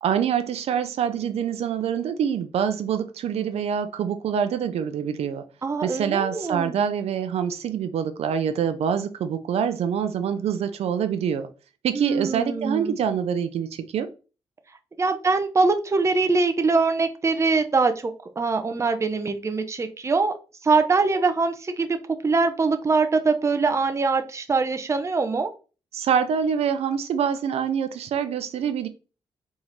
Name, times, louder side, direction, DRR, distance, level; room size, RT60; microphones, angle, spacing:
voice 1, 0.0-5.4 5.8-11.5 11.8-14.1 25.9-28.9, right 8 dB, 75° right, 0.6 m, -25 dB
voice 2, 5.6-6.7 11.9-13.0 15.0-20.3 20.6-22.0 22.2-25.5, right 4 dB, 25° right, 0.6 m, -23 dB
4.1 x 3.6 x 3.1 m
cardioid pair, 90°, 11 cm